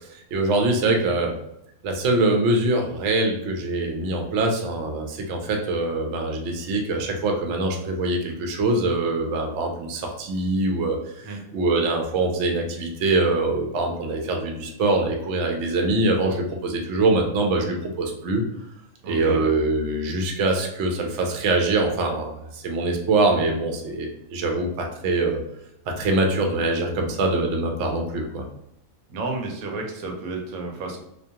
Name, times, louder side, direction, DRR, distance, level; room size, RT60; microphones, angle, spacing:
voice 1, 0.3-1.3 1.8-11.0 11.5-18.4 19.0-25.4 25.9-28.5, right 2 dB, 65° right, 2 dB, 0.8 m, -23 dB
voice 2, 19.0-19.4 29.1-31.0, right 3 dB, 90° right, 1 dB, 1.0 m, -31 dB
2.4 x 2.2 x 2.7 m, 0.80 s
omnidirectional pair, 1.4 m